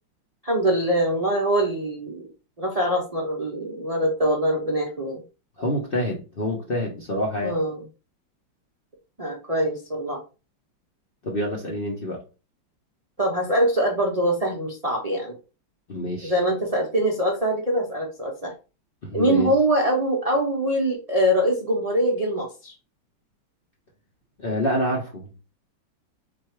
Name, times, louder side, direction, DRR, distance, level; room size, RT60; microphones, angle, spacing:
voice 1, 0.4-2.3 2.6-5.2 7.4-7.8 9.2-10.2 13.2-15.3 16.2-18.5 19.1-22.7, right 1 dB, 35° right, -1 dB, 0.6 m, -23 dB
voice 2, 5.6-7.5 11.2-12.2 15.9-16.3 19.0-19.5 24.4-25.3, equal, 40° left, -1 dB, 0.8 m, -27 dB
4.3 x 2.7 x 4.4 m, 0.32 s
omnidirectional pair, 2.1 m